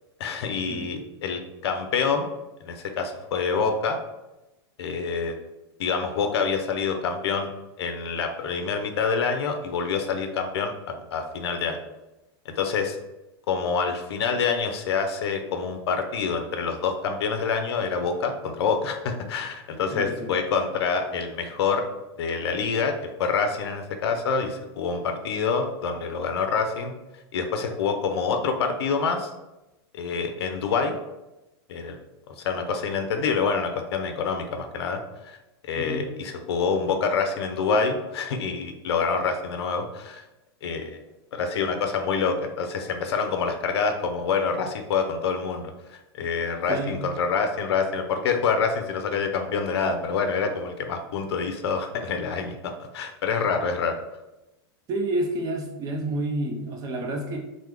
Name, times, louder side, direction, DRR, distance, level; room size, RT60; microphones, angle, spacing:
voice 1, 0.2-2.2 2.6-4.0 4.8-5.4 5.8-7.5 7.8-11.8 12.5-13.0 13.5-21.8 22.2-22.9 23.2-26.9 27.3-29.3 29.9-31.0 31.7-32.0 32.4-35.0 35.2-35.4 35.6-40.2 40.6-41.0 41.3-53.9, left 5 dB, 85° left, 6 dB, 0.5 m, -26 dB
voice 2, 19.9-20.3 35.8-36.1 46.7-47.0 54.9-57.4, right 1 dB, 25° right, 2 dB, 0.4 m, -29 dB
3.0 x 2.0 x 3.3 m, 0.97 s
supercardioid pair, 140°, 13 cm